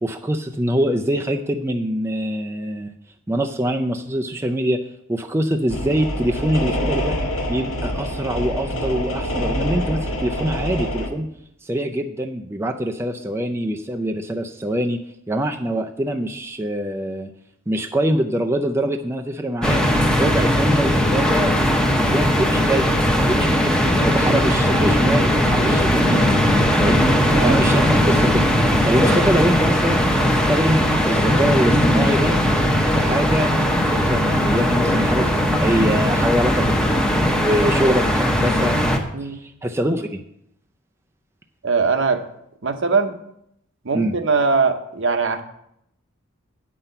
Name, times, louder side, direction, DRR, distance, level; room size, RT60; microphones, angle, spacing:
voice 1, 0.0-2.9 3.3-4.8 5.1-7.2 7.5-11.3 11.6-15.0 15.3-17.3 17.7-26.2 26.8-28.5 28.8-32.4 32.9-38.8 39.2-40.2 43.9-44.1, right 1 dB, 10° right, 3 dB, 0.4 m, -24 dB
sound 1, 5.7-11.1, equal, 80° left, 1.5 m, -26 dB
sound 2, 19.6-39.0, equal, 5° left, 0.9 m, -18 dB
voice 2, 41.6-42.2 42.6-43.1 43.8-45.4, right 4 dB, 60° right, 8 dB, 0.8 m, -21 dB
9.3 x 5.8 x 6.7 m, 0.76 s
head